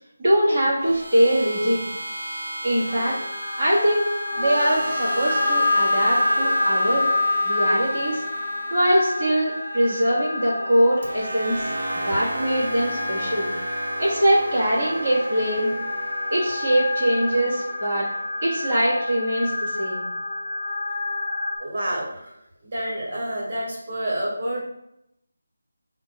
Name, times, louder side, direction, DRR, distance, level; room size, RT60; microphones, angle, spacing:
voice 1, 0.2-1.8 2.6-3.2 3.6-4.0 4.4-7.1 7.4-8.2 8.7-11.7 11.9-13.5 14.0-15.7 16.3-18.1 18.4-20.1, equal, 10° right, -14 dB, 0.8 m, -22 dB
sound 1, 0.8-19.0, right 2 dB, 60° right, 0.6 m, -35 dB
sound 2, 2.9-21.6, left 2 dB, 35° left, 1.0 m, -27 dB
voice 2, 21.6-22.3 22.6-24.6, right 1 dB, 30° right, -4 dB, 1.2 m, -28 dB
4.9 x 2.2 x 4.7 m, 0.81 s
figure-of-eight pair, 175°, 0 cm